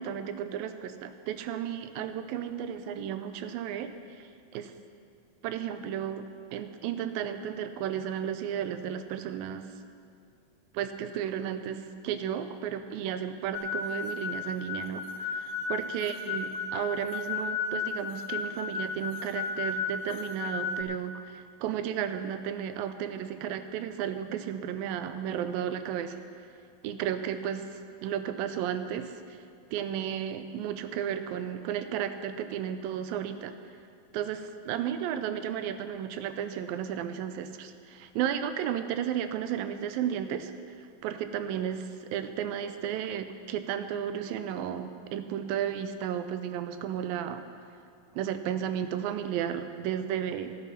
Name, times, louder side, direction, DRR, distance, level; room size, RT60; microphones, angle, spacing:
voice 1, 0.0-3.9 4.2-4.3 4.5-4.7 5.4-6.2 6.5-9.7 10.7-26.2 26.8-27.7 28.0-29.1 29.7-33.5 34.1-40.5 41.0-47.4 48.1-50.6, right 9 dB, 90° right, 10 dB, 2.5 m, -33 dB
sound 1, 13.5-20.8, left 5 dB, 80° left, 2.7 m, -34 dB
13.0 x 11.5 x 5.7 m, 2.3 s
omnidirectional pair, 4.0 m